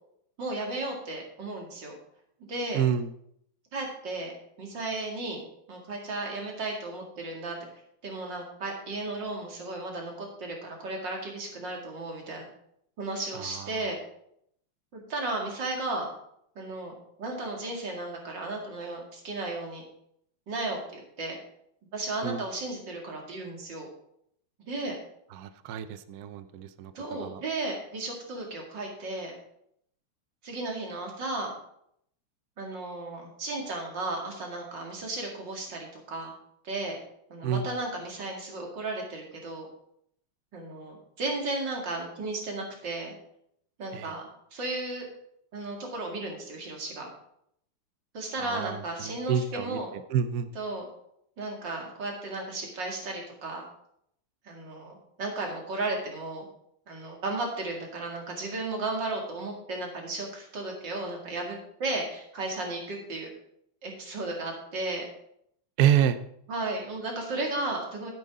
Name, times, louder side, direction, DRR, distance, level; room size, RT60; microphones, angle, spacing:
voice 1, 0.4-1.9 2.5-2.8 3.7-4.3 4.6-5.4 5.7-7.7 8.0-12.5 13.0-14.0 14.9-16.1 16.6-16.9 17.2-19.8 20.5-21.4 21.9-23.9 24.7-25.0 26.9-29.3 30.4-31.6 32.6-36.3 36.6-37.0 37.3-39.7 40.5-43.1 43.8-45.1 45.5-47.1 48.1-49.9 50.5-50.9 51.4-53.6 54.4-56.5 56.9-63.3 63.8-65.0 66.5-68.1, right 2 dB, 55° right, 0 dB, 3.0 m, -34 dB
voice 2, 2.7-3.1 13.3-13.8 22.2-22.4 25.3-26.9 27.2-27.4 37.4-37.6 43.9-44.1 48.4-50.5 65.8-66.2, right 9 dB, 80° right, 11 dB, 0.8 m, -28 dB
12.0 x 9.5 x 3.7 m, 0.71 s
omnidirectional pair, 2.4 m